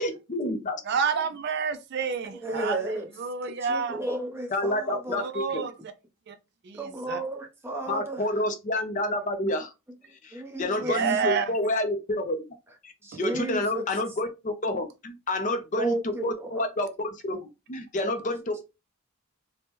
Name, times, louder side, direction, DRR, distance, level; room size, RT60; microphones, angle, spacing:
voice 1, 0.0-0.8 4.5-5.7 7.9-9.7 10.2-12.4 12.8-12.9 13.2-14.9 15.3-17.4 17.7-18.6, left 1 dB, 35° left, 0.4 m, -29 dB
voice 2, 0.9-2.8 3.2-4.0 5.1-5.9 6.3-6.4 6.6-7.2 10.8-11.5 13.1-13.2, right 5 dB, 50° right, 0.4 m, -29 dB
voice 3, 2.3-3.1 3.6-5.2 6.7-8.3 10.3-10.9 13.0-13.8 15.8-16.7, right 1 dB, 10° right, 0.6 m, -33 dB
3.3 x 2.1 x 2.9 m
head